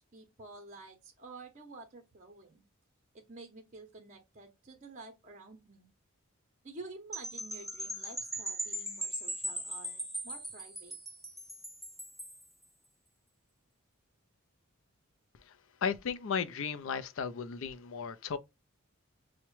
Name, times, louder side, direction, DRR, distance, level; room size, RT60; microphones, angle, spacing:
voice 1, 0.0-2.6 3.1-5.9 6.6-11.0, right 3 dB, 35° right, 0.6 m, -50 dB
sound 1, 7.1-12.4, right 1 dB, ahead, 0.7 m, -39 dB
voice 2, 15.8-18.4, left 6 dB, 65° left, 0.4 m, -35 dB
5.7 x 2.1 x 3.0 m
head